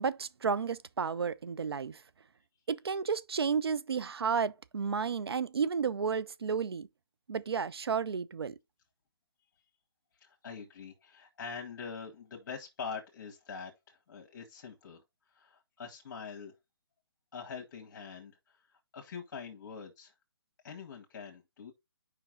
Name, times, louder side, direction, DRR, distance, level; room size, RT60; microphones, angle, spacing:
voice 1, 0.0-2.0 2.7-6.9 7.3-8.5, right 6 dB, 75° right, 0.5 m, -32 dB
voice 2, 10.1-15.0 15.3-16.5 17.3-20.1 20.6-21.7, left 5 dB, 50° left, 1.6 m, -44 dB
5.7 x 5.2 x 3.9 m
figure-of-eight pair, 140°, 13 cm